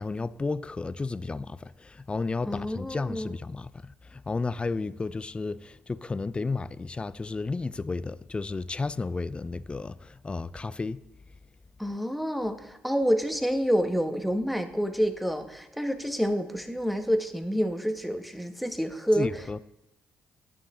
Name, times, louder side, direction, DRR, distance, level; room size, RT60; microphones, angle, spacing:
voice 1, 0.0-11.0 19.2-19.6, left 3 dB, 25° left, 0.4 m, -33 dB
voice 2, 2.5-3.3 11.8-19.6, equal, ahead, 1.4 m, -28 dB
9.8 x 8.6 x 3.8 m
hypercardioid pair, 50°, 5 cm